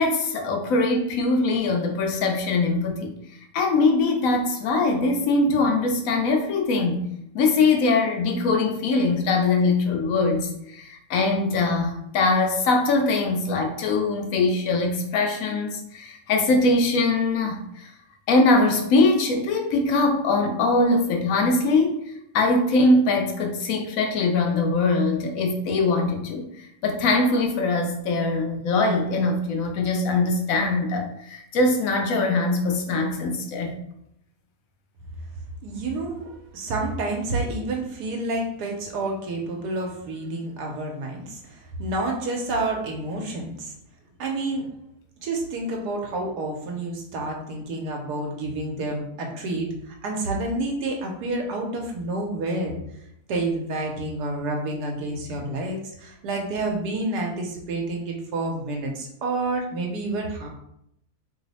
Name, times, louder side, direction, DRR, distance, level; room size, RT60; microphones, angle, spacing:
voice 1, 0.0-3.1 3.5-7.0 7.3-17.9 18.3-22.0 22.3-33.7, left 3 dB, 65° left, 3 dB, 0.9 m, -22 dB
voice 2, 35.6-43.7 44.2-44.7 45.2-52.8 53.3-60.5, right 2 dB, 85° right, 0 dB, 1.2 m, -29 dB
3.1 x 2.0 x 4.0 m, 0.76 s
omnidirectional pair, 1.7 m